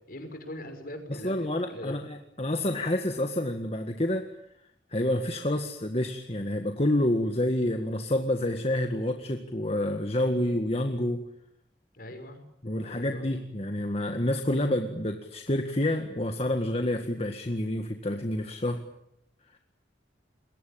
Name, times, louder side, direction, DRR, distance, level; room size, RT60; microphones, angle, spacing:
voice 1, 0.1-2.0 11.9-12.4 12.8-13.3, left 1 dB, 55° left, 7 dB, 6.1 m, -41 dB
voice 2, 1.1-4.3 4.9-11.2 12.6-18.8, left 1 dB, 35° left, 5 dB, 1.8 m, -28 dB
28.0 x 22.5 x 8.8 m, 0.77 s
head